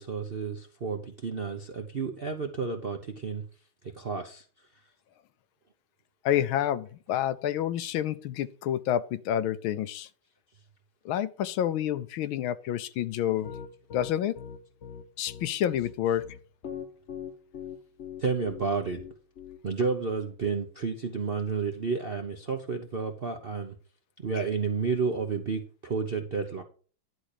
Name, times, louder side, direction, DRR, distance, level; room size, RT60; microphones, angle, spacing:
voice 1, 0.0-3.4 3.9-4.4 18.2-19.0 19.6-23.7 24.2-26.6, right 5 dB, 55° right, 0.6 m, -31 dB
voice 2, 6.2-10.1 11.0-13.5 13.9-14.4 15.2-16.3, left 11 dB, 80° left, 1.4 m, -28 dB
Piano, 13.4-19.9, left 8 dB, 45° left, 1.0 m, -41 dB
11.0 x 4.3 x 6.6 m
omnidirectional pair, 2.3 m